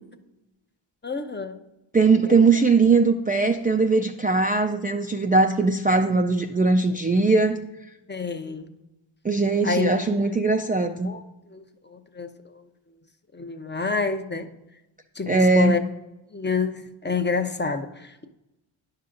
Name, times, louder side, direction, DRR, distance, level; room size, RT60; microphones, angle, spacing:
voice 1, 1.0-1.6 2.3-2.5 8.1-8.7 9.6-9.9 10.9-11.2 11.5-12.7 13.3-14.5 15.2-15.8 16.3-18.2, left 4 dB, 20° left, 8 dB, 0.6 m, -28 dB
voice 2, 1.9-7.6 9.2-11.1 15.3-15.8, right 3 dB, 20° right, 4 dB, 0.3 m, -20 dB
10.0 x 5.6 x 2.5 m, 0.94 s
cardioid pair, 50°, 49 cm